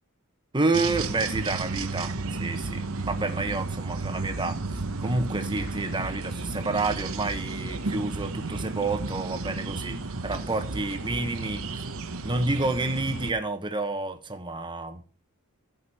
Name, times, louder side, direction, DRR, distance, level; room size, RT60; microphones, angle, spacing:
voice 1, 0.5-4.6 5.0-11.8 12.2-15.0, right 2 dB, 20° right, 8 dB, 1.2 m, -29 dB
sound 1, 0.7-13.3, right 3 dB, 65° right, 1.0 m, -33 dB
15.5 x 5.3 x 4.2 m, 0.37 s
head